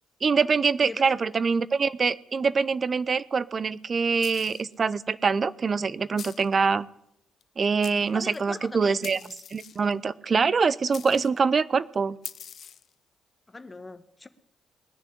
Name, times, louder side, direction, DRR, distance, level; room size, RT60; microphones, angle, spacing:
voice 1, 0.2-6.9 7.6-9.2 9.5-12.2, right 5 dB, 45° right, 0.7 m, -24 dB
voice 2, 0.8-1.2 8.1-9.3 13.5-14.3, left 3 dB, 25° left, 1.3 m, -41 dB
sound 1, 4.2-4.7 6.2-6.6 7.4-7.5 7.8-8.4 9.0-9.9 10.9-11.4 12.2-12.9, left 8 dB, 60° left, 0.6 m, -43 dB
19.5 x 7.0 x 9.9 m
hypercardioid pair, 45°, 0 cm